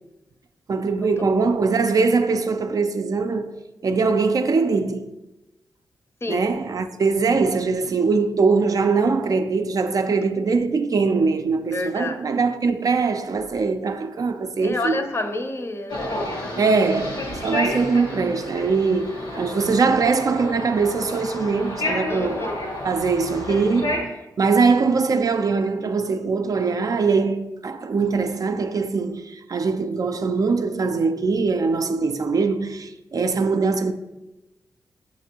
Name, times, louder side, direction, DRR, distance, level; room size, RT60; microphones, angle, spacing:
voice 1, 0.7-3.6 3.8-5.0 6.3-15.0 16.5-22.5 22.8-33.9, right 4 dB, 50° right, 0.4 m, -22 dB
voice 2, 11.7-12.2 14.6-16.7 22.1-22.6, left 2 dB, 35° left, 0.6 m, -29 dB
sound 1, 15.9-24.0, left 1 dB, 90° left, 1.2 m, -30 dB
7.1 x 2.6 x 2.8 m
cardioid pair, 50°, 8 cm